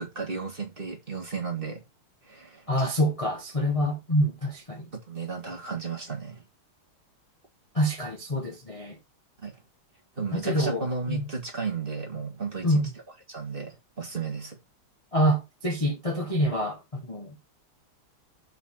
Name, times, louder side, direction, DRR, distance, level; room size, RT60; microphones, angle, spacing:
voice 1, 0.0-1.8 2.2-2.9 5.1-6.4 9.4-9.6 10.2-12.9 13.3-14.6, right 4 dB, 25° right, 1.8 m, -34 dB
voice 2, 2.7-4.9 7.7-9.0 10.3-10.8 11.1-11.3 12.6-12.9 15.1-17.4, equal, 20° left, 1.0 m, -26 dB
6.4 x 5.7 x 4.2 m
omnidirectional pair, 2.4 m